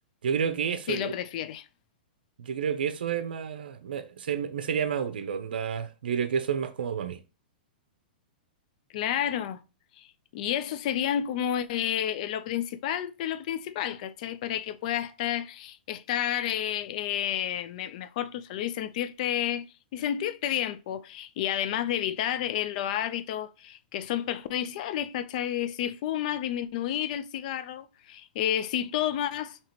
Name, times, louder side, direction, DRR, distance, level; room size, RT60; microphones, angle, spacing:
voice 1, 0.2-1.1 2.4-7.2, right 7 dB, 80° right, 0.5 m, -30 dB
voice 2, 0.9-1.7 8.9-9.6 10.0-10.1 10.3-19.7 19.9-29.6, left 11 dB, 50° left, 0.4 m, -30 dB
4.9 x 2.9 x 2.9 m
hypercardioid pair, 140°, 5 cm